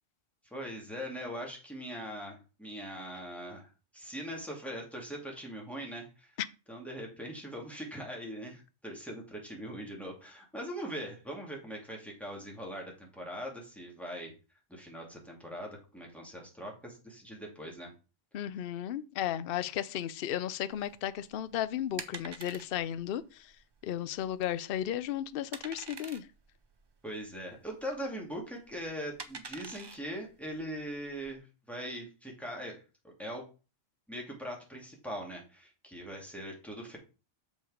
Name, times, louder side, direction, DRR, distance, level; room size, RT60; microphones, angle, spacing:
voice 1, 0.4-6.4 6.7-14.3 14.7-17.9 27.0-33.5 34.1-37.0, equal, ahead, 2.5 m, -41 dB
voice 2, 18.3-23.5 23.8-26.3, left 11 dB, 60° left, 0.7 m, -34 dB
sound 1, 20.7-31.3, right 4 dB, 35° right, 0.4 m, -48 dB
6.9 x 5.3 x 4.9 m
omnidirectional pair, 1.1 m